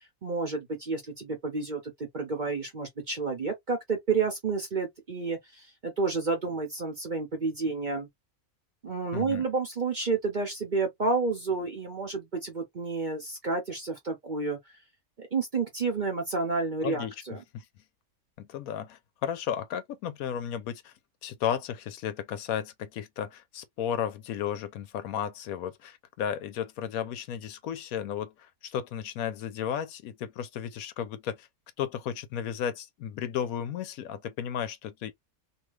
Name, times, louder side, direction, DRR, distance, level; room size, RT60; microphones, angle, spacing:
voice 1, 0.0-1.8 2.1-8.1 8.8-14.6 15.2-17.4, right 4 dB, 40° right, 0.8 m, -30 dB
voice 2, 9.1-9.4 16.8-17.1 17.5-17.6 18.4-20.9 21.2-31.5 31.8-35.1, left 9 dB, 75° left, 1.0 m, -34 dB
2.8 x 2.3 x 3.1 m
omnidirectional pair, 1.6 m